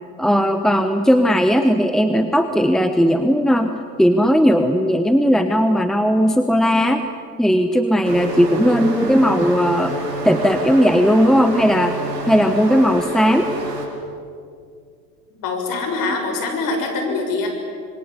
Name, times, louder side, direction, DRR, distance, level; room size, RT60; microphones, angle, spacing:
voice 1, 0.2-3.7 4.0-7.1 7.4-10.0 10.2-11.9 12.3-13.5, equal, ahead, 8 dB, 1.2 m, -17 dB
sound 1, 8.0-13.9, right 2 dB, 80° right, 5.3 m, -27 dB
voice 2, 15.3-17.5, left 3 dB, 40° left, 4 dB, 6.8 m, -24 dB
26.5 x 22.5 x 8.4 m, 2.3 s
hypercardioid pair, 95°, 49 cm